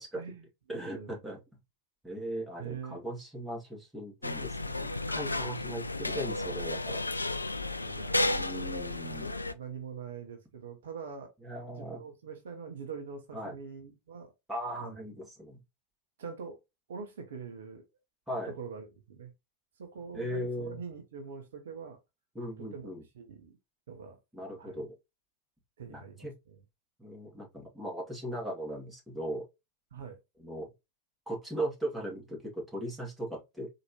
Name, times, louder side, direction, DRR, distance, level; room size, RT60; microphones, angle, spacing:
voice 1, 0.1-1.2 2.6-3.1 7.8-8.6 9.1-11.3 11.6-14.3 14.8-15.0 16.2-16.6 16.9-17.8 18.4-19.3 19.8-22.0 22.6-23.6 23.9-24.2 24.6-24.8 25.8-26.6 29.9-30.2, right 6 dB, 60° right, 0.9 m, -44 dB
voice 2, 0.7-1.4 2.0-7.0 8.2-9.3 11.4-12.0 13.3-13.6 14.5-15.6 18.3-18.5 20.1-20.8 22.4-23.0 24.3-25.0 25.9-26.3 27.0-29.4 30.4-30.7 31.3-33.7, right 1 dB, 5° right, 2.1 m, -38 dB
sound 1, 4.2-9.5, left 2 dB, 80° left, 0.3 m, -33 dB
4.2 x 2.9 x 2.9 m
figure-of-eight pair, 90°, 0 cm